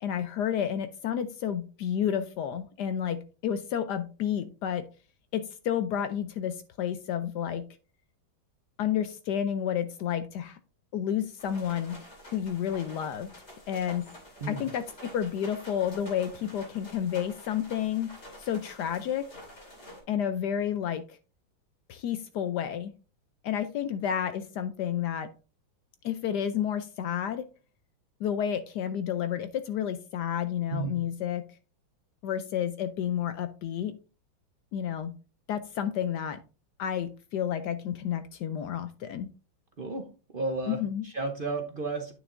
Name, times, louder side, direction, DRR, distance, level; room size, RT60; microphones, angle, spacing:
voice 1, 0.0-4.9 5.3-7.7 8.8-10.6 10.9-12.0 12.3-13.3 13.7-14.1 14.5-18.1 18.4-19.3 20.1-21.2 21.9-22.9 23.4-25.3 26.0-27.5 28.2-31.5 32.2-33.9 34.7-35.2 35.5-36.4 36.8-39.3 40.7-41.0, left 9 dB, 75° left, 10 dB, 1.0 m, -30 dB
sound 1, 11.4-20.0, equal, 35° left, 2.8 m, -48 dB
voice 2, 40.3-42.1, right 3 dB, 70° right, 4 dB, 0.5 m, -33 dB
9.2 x 6.3 x 2.5 m, 0.34 s
omnidirectional pair, 2.2 m